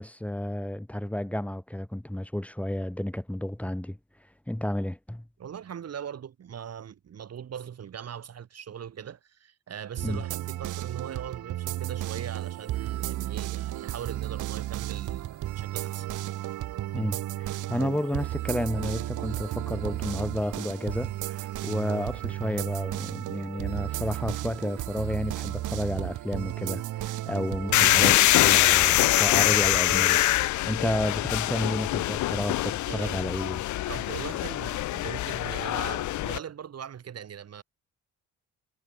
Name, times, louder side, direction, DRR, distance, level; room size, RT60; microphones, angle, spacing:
voice 1, 0.0-4.0 4.5-5.2 10.0-10.2 16.9-28.2 28.4-30.2 30.6-33.6, left 1 dB, 5° left, 4.3 m, -31 dB
voice 2, 5.4-16.1 32.9-33.3 33.9-37.6, right 8 dB, 55° right, 3.7 m, -40 dB
sound 1, 10.0-28.1, right 14 dB, 80° right, 1.9 m, -33 dB
sound 2, 27.7-36.4, left 16 dB, 75° left, 0.7 m, -24 dB
cardioid pair, 90°, 30 cm